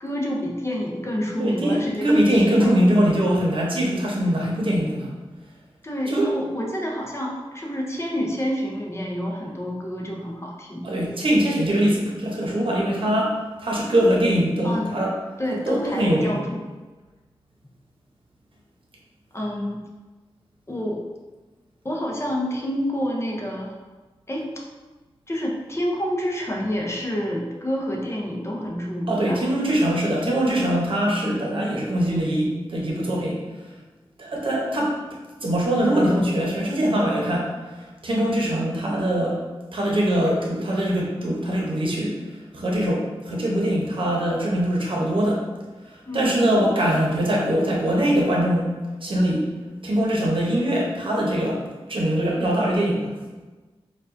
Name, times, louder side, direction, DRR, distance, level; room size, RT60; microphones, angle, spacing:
voice 1, 0.0-2.1 2.6-2.7 5.8-10.9 14.6-14.9 15.4-16.6 19.3-19.8 20.7-21.0 21.8-23.7 24.3-24.5 25.3-29.4 46.1-46.5, equal, 25° left, -2 dB, 0.7 m, -28 dB
voice 2, 1.4-5.1 6.1-6.3 10.8-15.1 15.7-16.4 29.1-33.4 34.2-35.0 35.4-39.4 39.7-42.2 42.5-45.4 45.9-48.7 49.0-49.5 49.8-53.1, right 1 dB, 60° right, -3 dB, 0.9 m, -22 dB
4.6 x 2.4 x 2.6 m, 1.2 s
wide cardioid pair, 85°, 10 cm